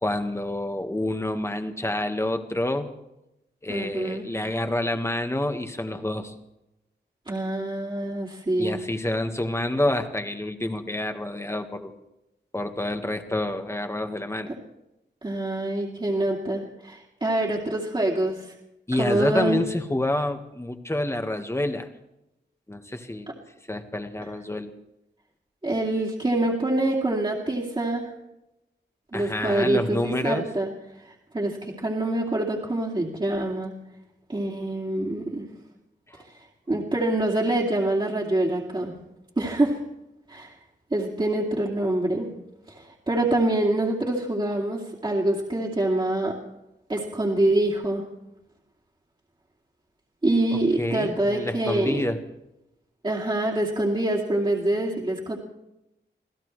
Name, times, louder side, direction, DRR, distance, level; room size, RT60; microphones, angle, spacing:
voice 1, 0.0-2.9 3.6-6.3 8.6-11.9 12.5-14.5 18.9-21.9 22.7-23.3 23.7-24.7 29.1-30.4 36.1-36.2 50.8-52.2, left 1 dB, 15° left, 6 dB, 1.5 m, -28 dB
voice 2, 3.7-4.2 7.3-8.8 15.2-18.5 18.9-19.6 25.6-28.1 29.1-30.7 31.0-33.7 34.3-35.5 36.7-38.9 39.4-39.8 40.3-40.5 40.9-42.3 42.7-46.4 46.9-48.0 50.2-52.1 53.0-55.4, right 1 dB, 25° right, -4 dB, 2.5 m, -25 dB
26.5 x 16.0 x 3.3 m, 0.89 s
wide cardioid pair, 95°, 19 cm